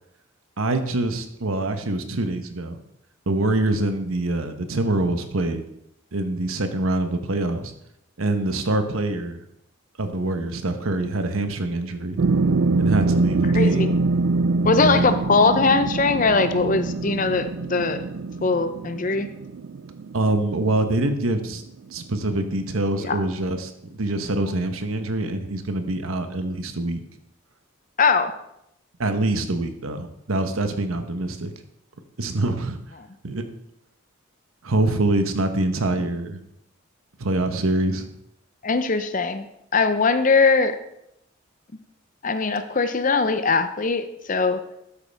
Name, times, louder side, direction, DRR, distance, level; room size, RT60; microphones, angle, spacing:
voice 1, 0.6-2.8 3.3-5.6 6.1-7.7 8.2-9.4 10.0-12.2 12.8-14.0 14.8-15.1 20.1-21.6 21.9-27.0 29.0-31.5 32.2-32.8 33.2-33.5 34.6-36.4 37.2-38.1, right 2 dB, 90° right, 8 dB, 1.1 m, -25 dB
sound 1, 12.2-21.2 21.6-21.7, right 3 dB, 75° right, 0.4 m, -24 dB
voice 2, 13.5-13.9 14.6-18.0 18.4-19.3 23.0-23.2 28.0-28.3 38.6-39.5 39.7-40.8 42.2-44.6, left 4 dB, 40° left, 10 dB, 0.7 m, -21 dB
12.5 x 8.4 x 3.5 m, 0.79 s
head